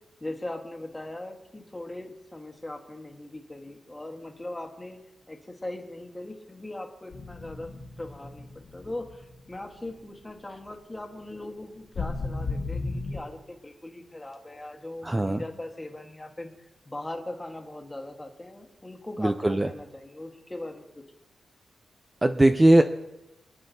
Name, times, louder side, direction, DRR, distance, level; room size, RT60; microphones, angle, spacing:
voice 1, 0.2-5.0 5.3-7.7 8.0-21.0, left 1 dB, 15° left, 3 dB, 1.4 m, -40 dB
sound 1, 7.1-9.9 10.2-10.4 12.0-13.2, left 3 dB, 65° left, 1.9 m, -35 dB
voice 2, 15.0-15.4 19.2-19.7 22.2-22.8, right 1 dB, 15° right, 7 dB, 0.5 m, -20 dB
25.5 x 9.7 x 2.7 m, 0.94 s
wide cardioid pair, 150°, 0 cm